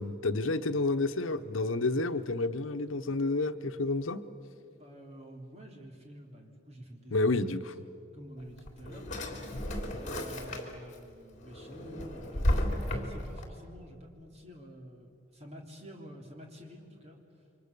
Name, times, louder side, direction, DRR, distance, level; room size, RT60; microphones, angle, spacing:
voice 1, 0.0-4.2 7.1-7.7 9.5-9.6, left 2 dB, 90° left, 10 dB, 0.9 m, -30 dB
voice 2, 4.7-7.6 8.1-9.6 9.9-17.2, equal, 35° right, 1 dB, 3.5 m, -49 dB
Drawer open or close, 8.4-11.0 11.4-13.4, left 1 dB, 40° left, 3.4 m, -33 dB
29.0 x 25.0 x 6.8 m, 2.6 s
head